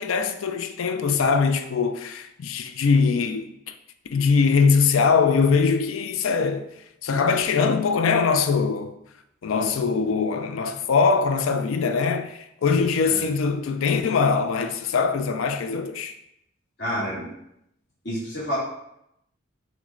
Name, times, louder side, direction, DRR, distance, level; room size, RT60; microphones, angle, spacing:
voice 1, 0.0-3.7 4.1-6.7 7.0-8.9 9.4-16.1, left 5 dB, 80° left, 0.4 m, -22 dB
voice 2, 16.8-17.3 18.0-18.6, equal, 60° left, 1.5 m, -29 dB
6.2 x 2.2 x 3.7 m
head